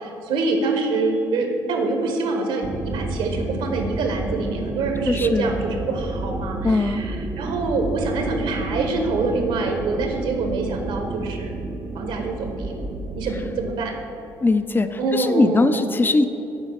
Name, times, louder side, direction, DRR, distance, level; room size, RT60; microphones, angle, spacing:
voice 1, 0.0-11.5 11.9-12.8 13.1-14.0 15.0-15.8, right 3 dB, 70° right, 4 dB, 1.3 m, -25 dB
sound 1, 2.6-13.8, right 3 dB, 30° right, 0.6 m, -30 dB
voice 2, 5.0-5.6 6.6-7.0 14.4-16.3, left 3 dB, 20° left, 11 dB, 0.5 m, -20 dB
7.3 x 4.9 x 6.5 m, 2.9 s
hypercardioid pair, 60°, 9 cm